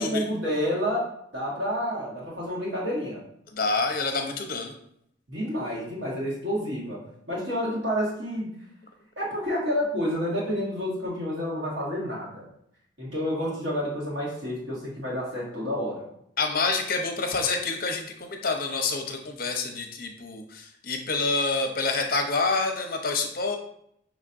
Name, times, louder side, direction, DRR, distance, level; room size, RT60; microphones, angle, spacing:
voice 1, 0.0-3.2 5.3-8.5 9.2-12.5 13.0-16.0, equal, 65° right, -5 dB, 1.6 m, -29 dB
voice 2, 3.5-4.7 16.4-23.6, left 3 dB, 50° left, 4 dB, 0.6 m, -27 dB
5.7 x 3.0 x 2.6 m, 0.72 s
head